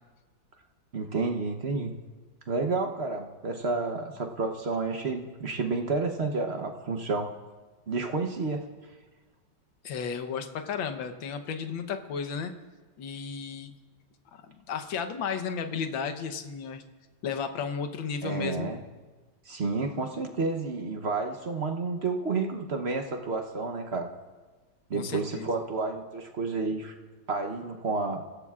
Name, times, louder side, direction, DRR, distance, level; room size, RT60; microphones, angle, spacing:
voice 1, 0.9-1.9 2.5-7.3 7.9-8.6 18.2-18.8 19.4-24.1 24.9-26.9 27.3-28.2, right 3 dB, 50° right, 4 dB, 0.8 m, -30 dB
voice 2, 9.8-12.5 13.0-13.7 14.3-16.8 17.2-18.7 24.9-25.6, left 6 dB, 70° left, 8 dB, 1.7 m, -33 dB
29.0 x 16.5 x 2.4 m, 1.3 s
omnidirectional pair, 2.2 m